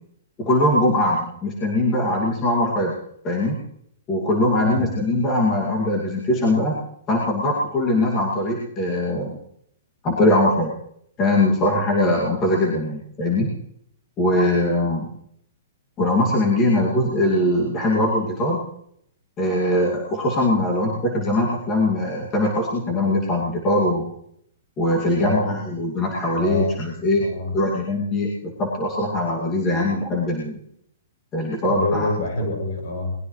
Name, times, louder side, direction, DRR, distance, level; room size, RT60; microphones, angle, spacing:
voice 1, 0.4-3.0 3.2-3.6 4.1-6.8 7.1-9.4 10.0-10.7 11.2-13.5 14.2-15.1 16.0-18.6 19.4-24.1 24.8-27.2 27.5-30.6 31.3-32.1, left 1 dB, 15° left, -3 dB, 2.3 m, -21 dB
voice 2, 25.2-25.5 26.4-27.6 31.7-33.2, left 1 dB, 60° left, 3 dB, 6.9 m, -26 dB
22.0 x 20.0 x 3.2 m, 0.69 s
hypercardioid pair, 180°, 0 cm